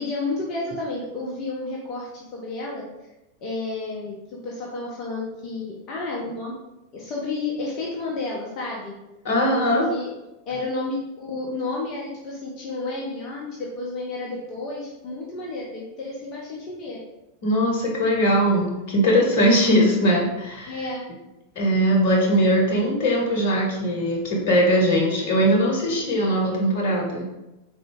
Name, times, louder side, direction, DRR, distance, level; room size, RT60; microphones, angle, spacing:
voice 1, 0.0-2.8 3.4-4.1 4.4-6.5 6.9-8.9 9.5-10.1 10.5-17.0 20.7-21.1, left 3 dB, 35° left, -4 dB, 0.7 m, -31 dB
voice 2, 9.2-9.9 17.4-20.9 21.6-27.2, equal, 55° left, -1 dB, 1.0 m, -20 dB
3.9 x 2.6 x 3.6 m, 0.98 s
figure-of-eight pair, 90°, 0 cm